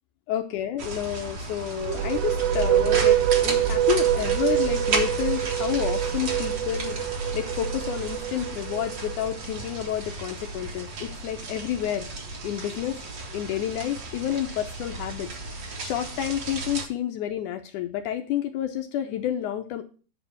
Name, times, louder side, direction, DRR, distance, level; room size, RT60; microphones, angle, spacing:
voice 1, 0.3-12.1 12.4-13.0 13.3-19.8, left 11 dB, 75° left, 6 dB, 1.8 m, -30 dB
sound 1, 0.8-16.9, right 3 dB, 50° right, 1.4 m, -34 dB
sound 2, 1.8-9.4, right 10 dB, 85° right, 2.6 m, -25 dB
9.4 x 4.9 x 7.0 m, 0.38 s
omnidirectional pair, 4.3 m